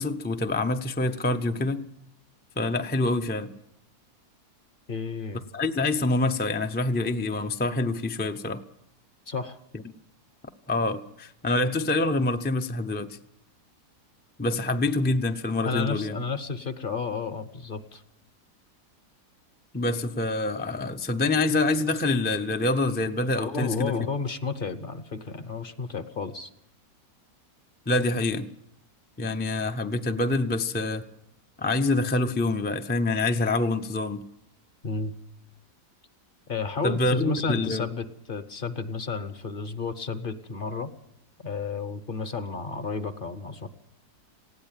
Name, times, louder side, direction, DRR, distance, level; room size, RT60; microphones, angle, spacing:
voice 1, 0.0-1.8 2.6-3.5 5.5-8.6 10.7-13.1 14.4-16.2 19.7-23.9 27.9-28.5 29.2-31.0 31.6-34.2 36.8-37.8, left 2 dB, 15° left, 0.3 m, -26 dB
voice 2, 4.9-5.4 9.3-9.6 15.6-18.0 23.4-26.5 34.8-35.1 36.5-40.9 41.4-43.7, left 4 dB, 40° left, 0.9 m, -32 dB
19.0 x 16.0 x 8.9 m
omnidirectional pair, 1.7 m